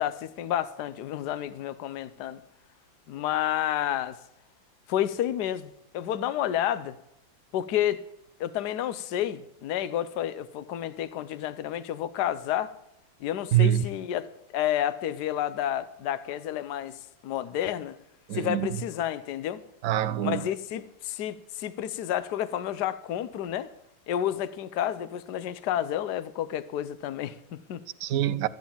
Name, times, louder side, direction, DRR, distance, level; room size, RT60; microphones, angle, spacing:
voice 1, 0.0-2.4 3.1-4.2 4.9-5.7 5.9-6.9 7.5-8.0 8.4-12.7 13.2-14.3 14.5-18.0 18.3-19.6 20.2-23.7 24.1-27.8, left 11 dB, 65° left, 1.3 m, -30 dB
voice 2, 13.5-13.9 18.3-18.8 19.8-20.5 28.0-28.5, right 11 dB, 65° right, 0.9 m, -25 dB
14.0 x 9.3 x 7.2 m
omnidirectional pair, 2.1 m